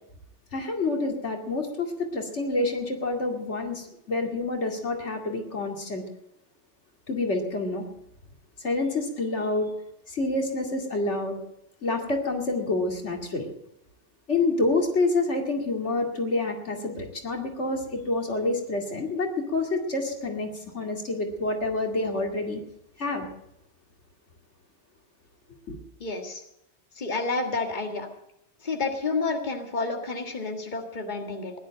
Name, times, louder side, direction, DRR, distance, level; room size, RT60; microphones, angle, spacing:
voice 1, 0.5-6.0 7.1-7.8 8.6-9.7 10.1-11.4 11.8-13.5 14.3-22.6 23.0-23.3 25.7-25.8, left 2 dB, 85° left, 3 dB, 2.7 m, -28 dB
voice 2, 26.0-26.4 27.0-28.1 28.6-31.5, left 3 dB, 40° left, 3 dB, 2.0 m, -30 dB
16.0 x 11.5 x 7.6 m, 0.81 s
omnidirectional pair, 1.2 m